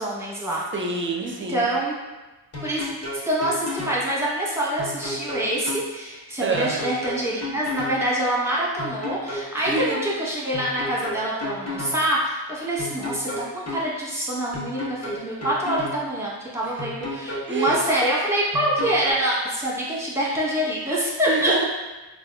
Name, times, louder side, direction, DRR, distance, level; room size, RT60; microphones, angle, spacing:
voice 1, 0.0-0.6 1.2-1.9 2.6-2.9 3.2-21.7, right 1 dB, 5° right, -6 dB, 0.9 m, -25 dB
voice 2, 0.7-1.7 6.4-6.8 9.6-10.0 17.4-17.8 21.3-21.7, right 3 dB, 30° right, 1 dB, 0.4 m, -26 dB
sound 1, 2.5-4.0 4.8-5.8 6.5-8.0 8.8-9.8 10.5-12.0 12.8-13.8 14.5-16.0 16.8-17.8 18.5-19.1, left 1 dB, 35° left, 0.9 m, -32 dB
3.5 x 2.4 x 2.2 m, 1.1 s
cardioid pair, 65°, 45 cm